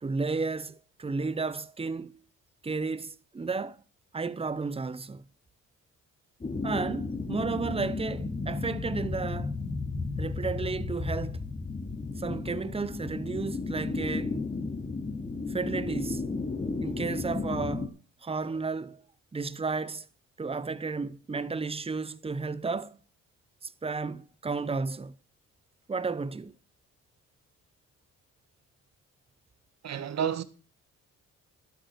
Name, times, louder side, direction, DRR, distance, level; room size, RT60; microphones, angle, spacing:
voice 1, 0.0-2.2 2.6-3.8 4.1-5.2 6.6-9.6 10.2-11.4 12.2-14.4 15.5-16.2 16.8-17.9 18.2-19.0 19.3-20.1 20.4-23.0 23.6-25.1 25.9-26.5, right 4 dB, 20° right, 1.0 m, -33 dB
sound 1, 6.4-17.9, left 3 dB, 25° left, 2.8 m, -33 dB
voice 2, 29.8-30.4, right 8 dB, 60° right, 1.7 m, -30 dB
12.5 x 8.4 x 6.6 m
cardioid pair, 90°, 30 cm